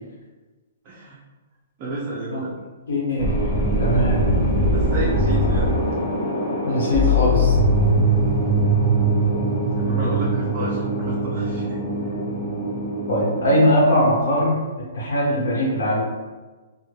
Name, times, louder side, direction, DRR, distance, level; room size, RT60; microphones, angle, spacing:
voice 1, 0.8-1.2 1.8-2.6 4.7-5.8 9.7-11.8, right 2 dB, 25° right, -5 dB, 0.4 m, -31 dB
voice 2, 2.9-3.3 3.8-4.3 6.6-7.9 13.1-14.6 14.9-16.0, equal, 75° left, -4 dB, 0.9 m, -20 dB
sound 1, 3.2-13.7, right 1 dB, 35° left, 1.1 m, -21 dB
3.2 x 2.1 x 2.2 m, 1.3 s
hypercardioid pair, 170°, 0 cm